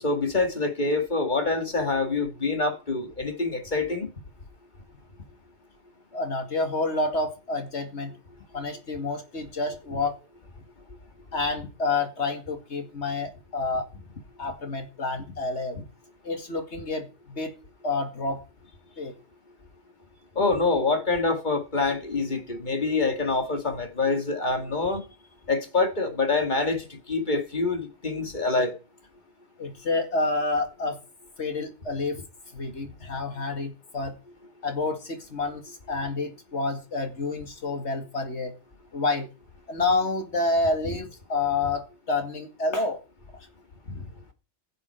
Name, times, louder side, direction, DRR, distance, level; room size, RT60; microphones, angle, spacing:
voice 1, 0.0-4.1 20.4-25.1 25.5-28.8, left 3 dB, 40° left, 2.0 m, -26 dB
voice 2, 6.1-8.1 8.5-10.2 11.3-14.0 14.4-15.8 16.2-17.5 17.8-18.4 19.0-19.1 29.6-31.0 31.4-32.2 32.5-34.2 34.6-38.5 38.9-39.3 39.7-43.0 43.9-44.1, left 3 dB, 75° left, 2.4 m, -29 dB
16.0 x 7.8 x 4.5 m
omnidirectional pair, 1.2 m